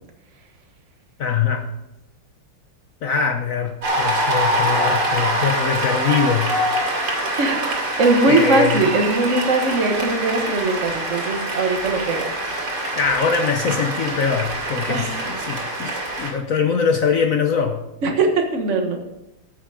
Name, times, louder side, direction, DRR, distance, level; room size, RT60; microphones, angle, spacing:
voice 1, 1.2-1.7 3.0-6.5 8.3-8.8 13.0-17.9, left 6 dB, 60° left, 0.8 m, -22 dB
Cheering / Applause, 3.8-16.3, right 1 dB, 85° right, 3.6 m, -24 dB
voice 2, 8.0-12.2 14.9-15.2 18.0-19.0, right 3 dB, 40° right, 1.6 m, -20 dB
14.0 x 8.1 x 5.1 m
omnidirectional pair, 2.3 m